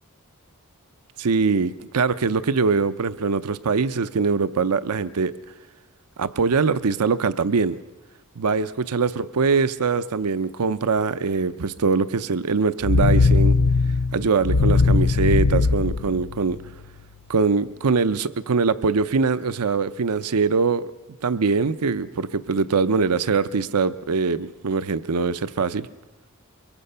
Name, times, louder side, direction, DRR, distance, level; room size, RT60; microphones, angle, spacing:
voice 1, 1.2-5.3 6.2-7.8 8.4-13.6 14.1-16.6 17.3-20.9 21.2-25.9, right 4 dB, 85° right, 14 dB, 0.6 m, -22 dB
sound 1, 12.8-16.8, left 4 dB, 85° left, 0.6 m, -19 dB
23.5 x 23.0 x 5.6 m, 1.1 s
head